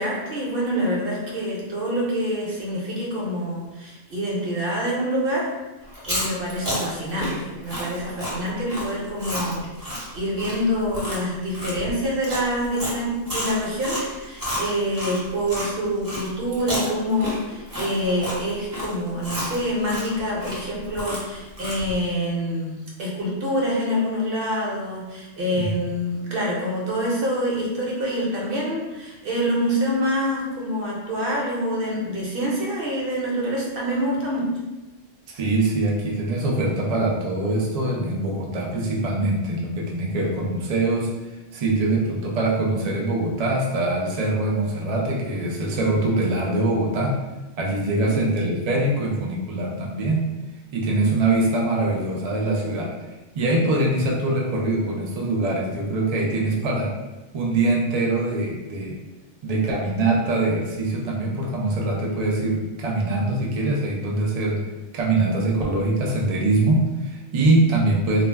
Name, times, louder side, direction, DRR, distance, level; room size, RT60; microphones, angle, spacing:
voice 1, 0.0-5.4 6.1-22.7 23.0-34.5 48.0-48.2, equal, 55° right, -4 dB, 0.8 m, -26 dB
Chewing mastication, 5.9-15.7 16.0-22.0, equal, 25° right, 0.5 m, -31 dB
voice 2, 35.3-41.1 41.5-47.2 47.6-50.2 50.7-52.9 53.3-56.9 57.3-59.0 59.4-64.6 64.9-68.2, right 2 dB, 80° right, -2 dB, 0.3 m, -23 dB
2.4 x 2.2 x 3.3 m, 1.1 s
omnidirectional pair, 1.3 m